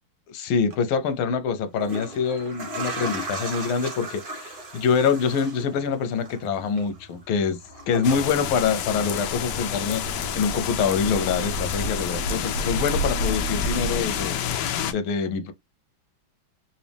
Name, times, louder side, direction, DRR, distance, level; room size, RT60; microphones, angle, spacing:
voice 1, 0.3-7.6 7.9-14.6 14.9-15.5, left 6 dB, 90° left, 1.5 m, -25 dB
sound 1, 0.6-0.8 1.6-9.6 9.9-11.0 11.4-11.5, right 1 dB, 35° right, 0.9 m, -37 dB
sound 2, 8.0-14.9, left 5 dB, 70° left, 1.0 m, -28 dB
4.1 x 2.5 x 3.3 m
omnidirectional pair, 2.2 m